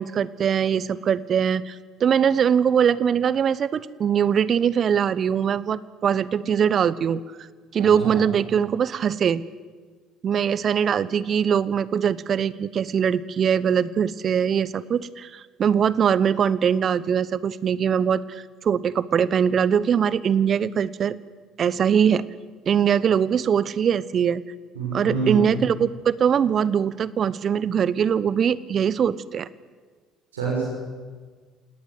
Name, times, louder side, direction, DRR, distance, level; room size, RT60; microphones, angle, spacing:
voice 1, 0.0-1.7 2.0-7.2 7.7-9.4 10.2-21.2 21.6-22.2 22.7-24.4 24.9-29.5, right 8 dB, 45° right, 19 dB, 1.0 m, -22 dB
voice 2, 7.8-8.1 24.7-25.4 30.3-30.7, right 4 dB, 85° right, -3 dB, 6.1 m, -27 dB
27.5 x 19.0 x 8.3 m, 1.5 s
hypercardioid pair, 55°, 0 cm